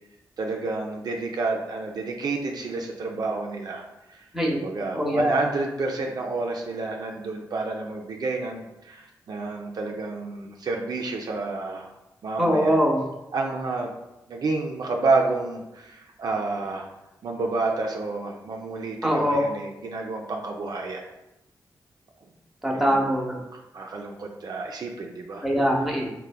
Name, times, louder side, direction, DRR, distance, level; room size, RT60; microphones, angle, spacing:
voice 1, 0.4-3.8 4.1-4.2 4.5-11.9 12.2-12.8 13.3-13.9 14.3-16.9 17.2-21.0 22.7-23.1 23.5-25.4, right 3 dB, 60° right, 1 dB, 0.3 m, -29 dB
voice 2, 4.9-5.3 12.4-13.0 19.0-19.4 22.6-23.4 25.4-26.1, equal, 5° right, -1 dB, 0.7 m, -22 dB
3.2 x 2.0 x 2.2 m, 0.94 s
cardioid pair, 45°, 8 cm